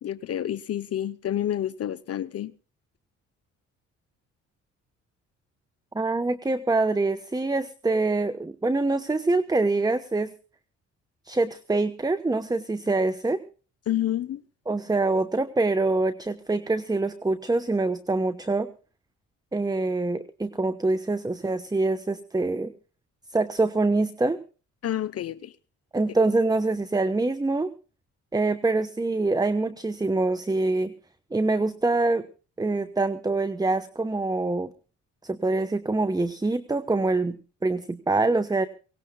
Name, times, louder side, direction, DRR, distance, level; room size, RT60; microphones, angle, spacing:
voice 1, 0.0-2.5 13.9-14.4 24.8-25.5, left 11 dB, 55° left, 0.8 m, -29 dB
voice 2, 5.9-10.3 11.3-13.4 14.7-18.7 19.5-22.7 23.3-24.4 25.9-27.7 28.3-30.9 31.3-32.3 32.6-34.7 35.2-38.7, right 2 dB, 15° right, 1.0 m, -25 dB
23.5 x 18.0 x 2.3 m
cardioid pair, 90°, 30 cm